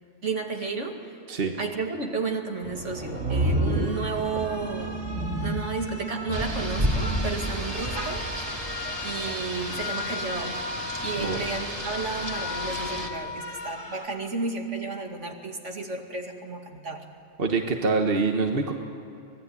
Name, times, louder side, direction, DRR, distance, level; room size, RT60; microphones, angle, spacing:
voice 1, 0.2-1.1 1.6-5.0 5.4-8.3 9.0-10.6 11.0-17.0, right 4 dB, 75° right, 2 dB, 2.6 m, -32 dB
sound 1, 2.5-14.1, left 4 dB, 30° left, 2.9 m, -38 dB
sound 2, 2.6-7.9, right 1 dB, 90° right, 2.9 m, -30 dB
Rain, 6.3-13.1, equal, 20° right, 2.2 m, -32 dB
voice 2, 17.4-18.7, right 4 dB, 50° right, 3 dB, 1.6 m, -25 dB
25.0 x 20.0 x 9.7 m, 2.7 s
omnidirectional pair, 1.3 m